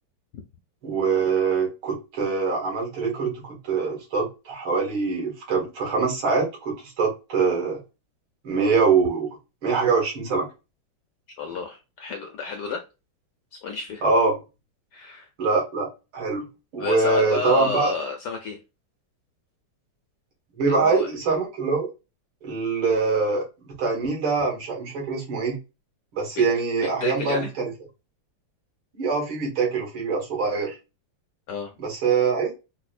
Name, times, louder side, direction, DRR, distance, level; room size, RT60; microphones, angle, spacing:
voice 1, 0.8-7.8 8.4-9.3 9.6-10.5 14.0-14.4 15.4-15.9 16.1-16.4 16.7-17.9 20.6-21.9 22.4-23.4 23.8-25.6 26.1-27.7 28.9-30.7 31.8-32.5, right 4 dB, 65° right, -2 dB, 2.4 m, -23 dB
voice 2, 11.4-12.8 13.5-14.0 14.9-15.3 16.8-18.6 20.7-21.1 26.4-26.5 26.8-27.5 31.5-31.7, left 5 dB, 80° left, 3 dB, 0.9 m, -31 dB
5.1 x 2.1 x 2.3 m, 0.28 s
omnidirectional pair, 2.4 m